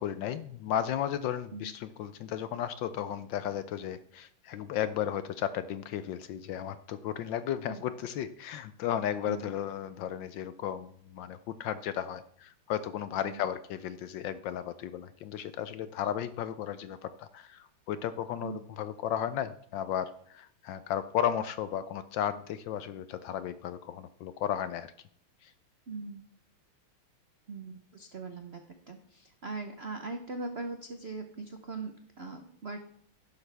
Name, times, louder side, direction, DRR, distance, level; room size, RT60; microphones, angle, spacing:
voice 1, 0.0-24.9 25.4-25.5, left 10 dB, 75° left, 13 dB, 1.1 m, -34 dB
voice 2, 25.9-26.2 27.5-32.8, right 3 dB, 90° right, 6 dB, 0.5 m, -40 dB
12.0 x 10.5 x 3.4 m, 0.64 s
omnidirectional pair, 2.4 m